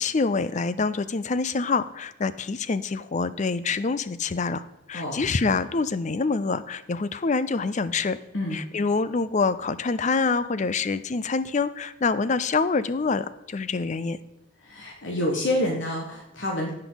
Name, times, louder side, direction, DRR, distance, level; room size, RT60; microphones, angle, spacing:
voice 1, 0.0-8.2 8.5-14.2, left 4 dB, 35° left, 14 dB, 0.5 m, -26 dB
voice 2, 14.6-16.7, left 1 dB, 65° left, -1 dB, 1.6 m, -28 dB
16.5 x 5.6 x 4.0 m, 0.91 s
head